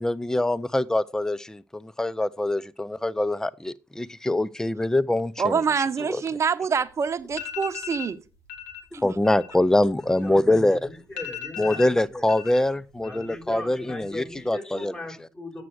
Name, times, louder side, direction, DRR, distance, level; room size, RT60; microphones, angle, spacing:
voice 1, 0.0-5.6 6.1-6.2 8.9-10.9 11.6-14.9, left 1 dB, 10° left, 0.5 m, -24 dB
voice 2, 5.4-8.2 8.9-9.0, right 6 dB, 45° right, 0.9 m, -25 dB
sound 1, 6.9-7.0 7.3-8.1 8.5-8.8 9.1-10.6 10.9-11.0 11.2-12.6 12.9-13.5 13.8-14.3, left 10 dB, 90° left, 1.4 m, -37 dB
voice 3, 10.2-12.3 13.0-15.6, left 1 dB, 30° left, 4.8 m, -39 dB
7.5 x 6.9 x 6.3 m
hypercardioid pair, 50°, 7 cm